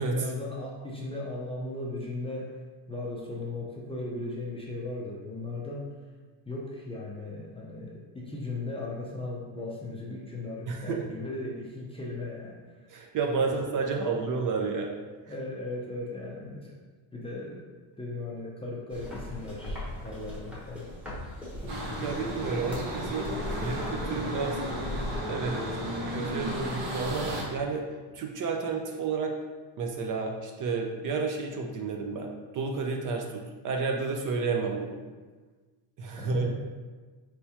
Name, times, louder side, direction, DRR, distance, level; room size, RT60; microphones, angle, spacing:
voice 1, 0.0-2.6 2.9-5.9 6.5-12.6 15.3-16.7 17.1-17.6 18.0-20.9 36.2-36.5, left 2 dB, 15° left, -4 dB, 0.4 m, -37 dB
voice 2, 10.7-11.0 12.9-14.9 22.0-23.3 23.6-24.6 25.3-25.6 26.1-27.9 28.1-29.3 29.8-35.0 36.0-36.5, right 4 dB, 45° right, 2 dB, 0.5 m, -31 dB
sound 1, 18.9-27.4, left 1 dB, 5° right, 1.0 m, -40 dB
sound 2, 21.7-27.4, equal, 65° right, 1.1 m, -34 dB
4.4 x 3.4 x 2.8 m, 1.4 s
cardioid pair, 135°, 46 cm